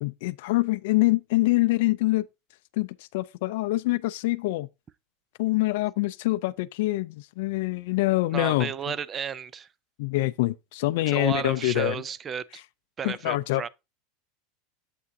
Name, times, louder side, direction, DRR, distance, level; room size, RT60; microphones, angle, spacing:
voice 1, 0.0-2.3 2.8-4.7 5.4-8.7 10.0-12.0 13.0-13.7, left 19 dB, 60° left, 0.4 m, -25 dB
voice 2, 8.3-9.7 11.0-12.6 13.0-13.7, right 7 dB, 20° right, 0.3 m, -33 dB
8.3 x 7.6 x 2.7 m
supercardioid pair, 170°, 0 cm